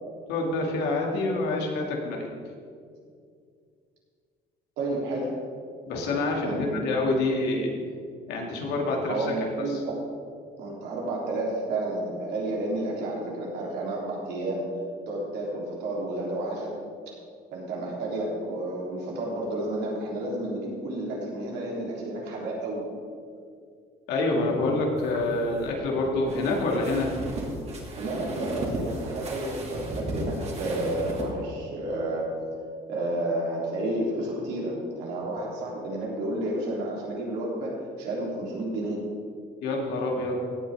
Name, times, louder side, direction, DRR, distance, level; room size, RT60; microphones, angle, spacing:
voice 1, 0.3-2.3 5.9-7.7 8.3-9.3 24.1-27.1 39.6-40.4, left 2 dB, 85° left, 0 dB, 2.4 m, -27 dB
voice 2, 4.8-5.4 6.4-6.9 9.1-10.0 10.6-14.7 15.1-16.8 17.5-22.8 28.0-32.3 32.9-39.1, right 1 dB, 85° right, -3 dB, 3.4 m, -31 dB
sound 1, 25.0-31.3, right 1 dB, 40° right, 2.5 m, -35 dB
16.5 x 8.7 x 3.6 m, 2.2 s
cardioid pair, 110°, 17 cm